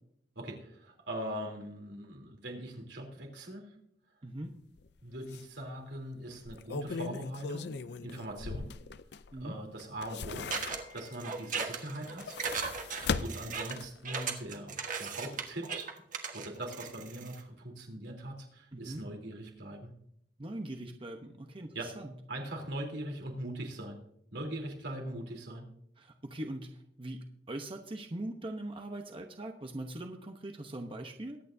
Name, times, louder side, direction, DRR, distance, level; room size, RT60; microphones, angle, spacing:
voice 1, 0.4-3.7 5.0-8.7 9.4-12.4 12.8-15.9 16.3-19.9 21.7-21.9 22.3-24.0 24.3-25.7, right 1 dB, 80° right, 1 dB, 3.4 m, -41 dB
voice 2, 4.2-4.5 9.3-9.6 18.7-19.0 20.4-22.1 26.0-26.7 27.0-31.4, right 1 dB, 30° right, 4 dB, 0.9 m, -41 dB
sound 1, 4.8-4.9 5.3-5.4 6.4-9.4 9.8-11.1 12.0-14.1 14.5-14.6, left 4 dB, 65° left, 0.5 m, -38 dB
sound 2, 10.5-17.4, right 5 dB, 50° right, 1.5 m, -37 dB
22.5 x 9.1 x 2.7 m, 0.71 s
head